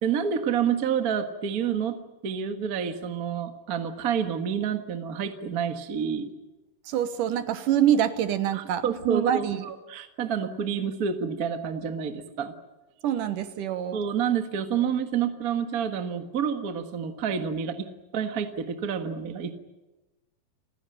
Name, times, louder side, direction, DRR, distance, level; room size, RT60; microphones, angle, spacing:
voice 1, 0.0-6.3 8.5-12.5 13.9-17.9 18.1-19.5, right 7 dB, 45° right, 7 dB, 1.2 m, -29 dB
voice 2, 6.9-9.6 13.0-14.0, right 10 dB, 75° right, 11 dB, 2.6 m, -25 dB
30.0 x 16.0 x 9.2 m, 1.1 s
omnidirectional pair, 4.0 m